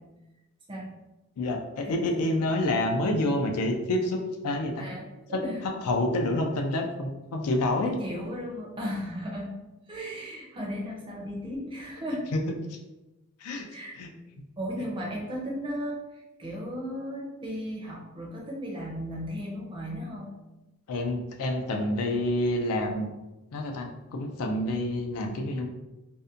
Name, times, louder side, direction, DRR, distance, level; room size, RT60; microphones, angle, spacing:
voice 1, 1.4-4.9 5.3-5.4 5.8-7.9 12.3-12.4 12.7-12.8 13.4-13.7 14.0-14.1 20.9-23.1 23.5-25.7, left 1 dB, 80° left, 2 dB, 0.4 m, -28 dB
voice 2, 4.8-5.6 7.8-9.6 9.9-12.3 13.7-14.0 14.6-20.3, equal, 20° right, -2 dB, 0.5 m, -35 dB
2.6 x 2.1 x 2.4 m, 1.0 s
head